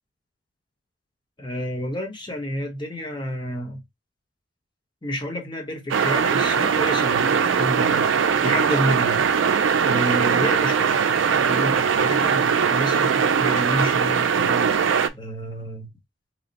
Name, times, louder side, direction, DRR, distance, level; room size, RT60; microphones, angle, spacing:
voice 1, 1.4-3.8 5.0-8.1 8.4-9.3 9.8-14.8 15.1-15.9, equal, 25° left, 1.0 m, -30 dB
sound 1, 5.9-15.1, right 6 dB, 85° right, 0.4 m, -20 dB
3.2 x 2.1 x 3.9 m
head